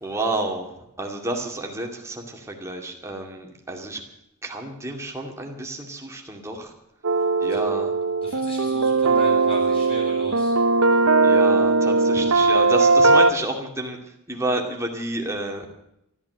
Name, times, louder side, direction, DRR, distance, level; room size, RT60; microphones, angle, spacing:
voice 1, 0.0-0.7 1.0-4.0 4.4-6.7 7.4-7.9 11.2-14.0 14.3-15.7, right 2 dB, 15° right, 1 dB, 2.4 m, -30 dB
sound 1, 7.0-13.3, right 3 dB, 70° right, 0.9 m, -19 dB
voice 2, 8.2-10.5, left 1 dB, 25° left, -2 dB, 7.2 m, -37 dB
13.5 x 12.5 x 7.9 m, 0.81 s
head